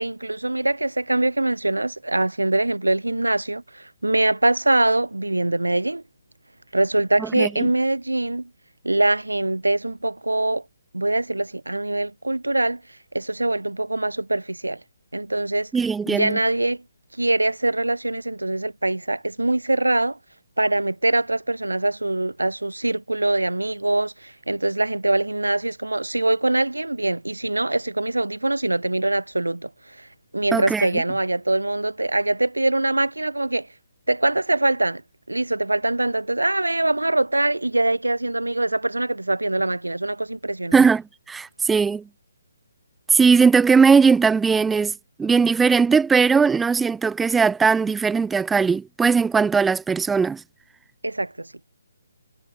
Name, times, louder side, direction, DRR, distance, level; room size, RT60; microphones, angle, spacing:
voice 1, 0.0-6.0 6.7-8.5 8.8-10.6 10.9-12.8 13.1-14.8 15.1-15.7 16.1-16.8 17.2-20.2 20.6-30.1 30.3-33.7 34.1-35.0 35.3-40.8 51.0-51.5, right 2 dB, 85° right, 1.9 m, -23 dB
voice 2, 7.2-7.7 15.7-16.4 30.5-30.9 40.7-42.0 43.1-44.9 45.2-50.4, right 5 dB, 5° right, 0.6 m, -19 dB
figure-of-eight pair, 140°, 0 cm